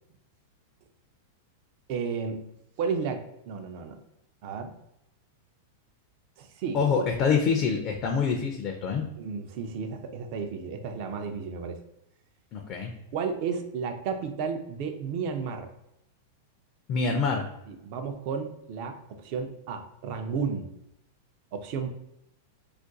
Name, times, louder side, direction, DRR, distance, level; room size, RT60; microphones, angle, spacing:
voice 1, 1.9-2.4 2.8-4.0 4.4-4.7 6.4-6.8 9.2-11.8 13.1-15.7 17.7-20.7 21.5-21.9, right 5 dB, 50° right, 6 dB, 0.4 m, -33 dB
voice 2, 6.7-9.0 12.5-12.9 16.9-17.5, left 5 dB, 40° left, 3 dB, 0.4 m, -26 dB
2.4 x 2.2 x 3.8 m, 0.83 s
supercardioid pair, 135°, 0 cm